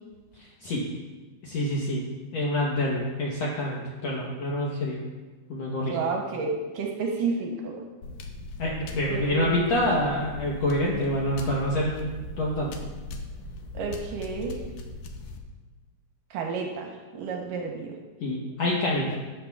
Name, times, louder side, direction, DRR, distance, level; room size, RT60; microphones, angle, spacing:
voice 1, 0.4-0.8 1.4-2.0 2.3-5.0 5.5-6.0 8.6-12.7 18.2-19.1, left 1 dB, 70° left, -3 dB, 1.6 m, -27 dB
voice 2, 5.9-7.9 9.1-9.7 13.7-14.6 16.3-18.0, right 4 dB, 70° right, 1 dB, 2.3 m, -31 dB
sound 1, 8.0-15.4, left 2 dB, 90° left, 1.6 m, -39 dB
12.5 x 10.5 x 2.4 m, 1.3 s
omnidirectional pair, 4.4 m